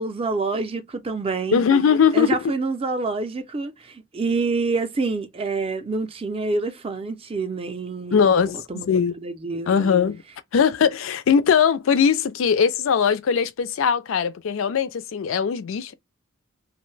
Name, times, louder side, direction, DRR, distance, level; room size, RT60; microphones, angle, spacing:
voice 1, 0.0-1.6 2.1-8.3 8.7-9.9, right 3 dB, 30° right, 0.4 m, -27 dB
voice 2, 1.5-2.3 8.1-8.6 8.9-9.1 9.7-10.2 10.5-15.9, left 6 dB, 75° left, 0.4 m, -20 dB
2.6 x 2.1 x 3.1 m
head